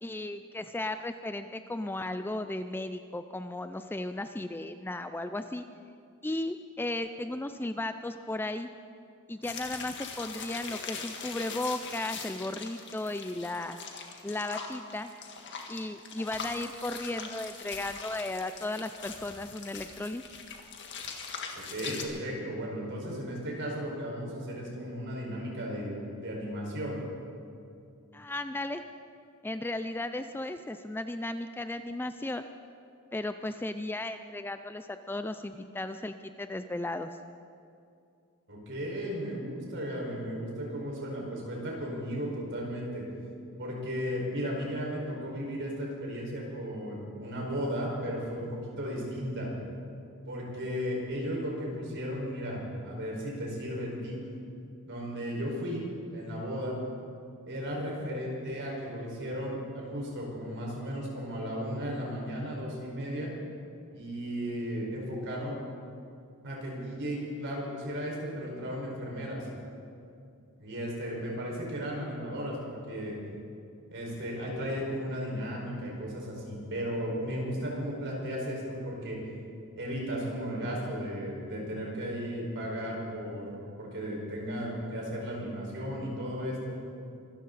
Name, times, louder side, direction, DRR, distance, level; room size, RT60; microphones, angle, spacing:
voice 1, 0.0-5.7 6.2-8.7 9.3-13.8 14.2-15.1 15.7-20.2 28.1-28.8 29.4-32.4 33.1-37.2, left 2 dB, 10° left, 9 dB, 0.4 m, -35 dB
sound 1, 9.4-22.0, left 5 dB, 55° left, 1.8 m, -42 dB
voice 2, 21.5-27.0 38.5-43.0 43.6-49.5 50.3-54.2 54.8-55.8 56.1-56.7 57.4-63.3 63.9-65.6 66.4-69.4 70.6-73.1 73.9-79.2 79.7-86.8, equal, 55° right, -2 dB, 5.1 m, -35 dB
24.5 x 14.0 x 4.1 m, 2.5 s
head